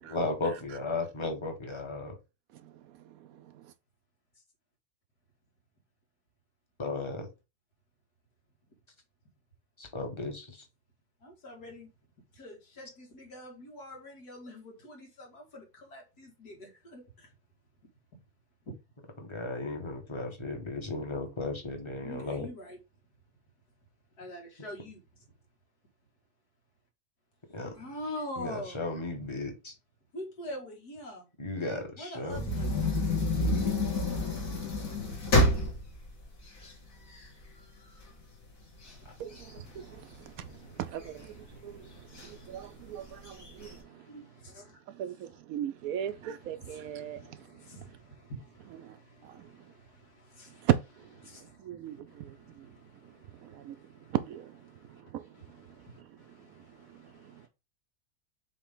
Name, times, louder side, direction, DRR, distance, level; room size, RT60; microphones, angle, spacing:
voice 1, 0.0-2.1 6.8-7.3 9.8-10.6 19.2-22.5 27.5-27.7 28.4-29.7 31.4-32.4 33.3-33.7, left 2 dB, 20° left, 1.3 m, -35 dB
voice 2, 3.0-3.7 39.2-44.1 44.9-47.6 48.8-49.0 49.2-49.5 50.6-51.1 51.4-52.7 53.3-53.8 54.1-54.6 55.1-56.1 56.6-57.5, right 11 dB, 70° right, 0.9 m, -37 dB
voice 3, 11.2-11.9 12.3-17.3 22.0-22.8 24.2-25.0 27.7-28.8 30.1-31.3 32.0-32.9 38.8-40.9 41.1-44.8 45.2-45.4 46.0-50.7 51.2-54.2 54.7-57.5, equal, 80° left, 2.6 m, -46 dB
sound 1, 32.3-37.5 38.0-38.1 38.4-40.5 41.0-41.6 42.2-42.3 42.6-42.7 43.1-43.7, left 1 dB, 60° left, 2.6 m, -29 dB
7.6 x 3.3 x 3.7 m
omnidirectional pair, 1.6 m